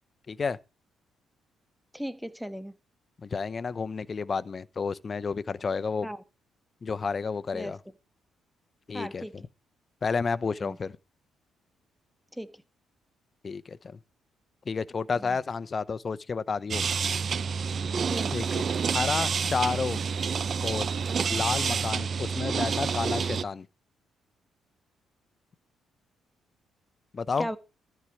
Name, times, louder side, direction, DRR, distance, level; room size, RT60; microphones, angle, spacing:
voice 1, 0.3-0.6 3.2-6.1 6.8-7.8 8.9-9.3 10.0-11.0 13.4-13.8 14.7-16.8 18.3-18.6 18.9-20.0 20.6-20.9 21.3-23.7 27.1-27.5, left 5 dB, 35° left, 0.8 m, -31 dB
voice 2, 1.9-2.7 6.0-6.2 7.5-7.7 8.9-9.3 10.6-10.8 12.3-12.5 15.2-15.4 18.1-18.3 27.4-27.6, equal, ahead, 1.3 m, -36 dB
sound 1, 16.7-23.4, right 6 dB, 50° right, 0.6 m, -28 dB
13.5 x 4.6 x 7.3 m
cardioid pair, 90°, 0 cm